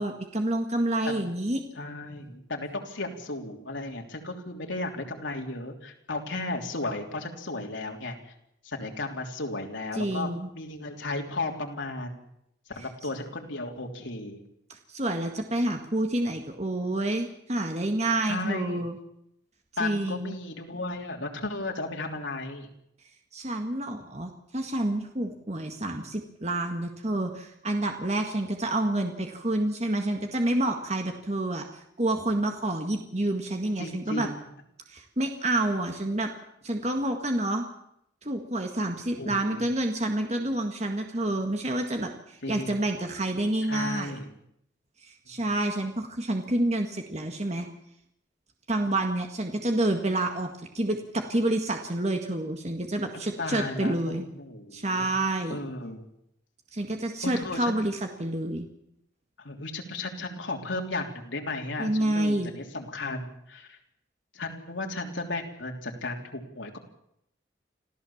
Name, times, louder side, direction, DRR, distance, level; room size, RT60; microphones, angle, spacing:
voice 1, 0.0-1.6 9.9-10.5 14.7-19.0 19.8-20.3 23.3-34.3 34.9-36.3 36.6-37.7 38.2-44.1 45.0-47.7 48.7-54.3 54.7-55.6 56.7-58.7 61.8-62.5, right 1 dB, 35° right, 4 dB, 1.8 m, -28 dB
voice 2, 1.8-8.3 8.6-12.2 12.7-14.4 18.3-18.8 19.8-22.7 33.8-34.4 39.2-39.6 42.4-42.8 43.7-44.4 53.1-55.1 55.5-56.1 57.2-57.7 59.4-63.8 64.3-66.8, left 2 dB, 85° left, 2 dB, 3.3 m, -35 dB
26.0 x 15.0 x 7.3 m, 0.76 s
head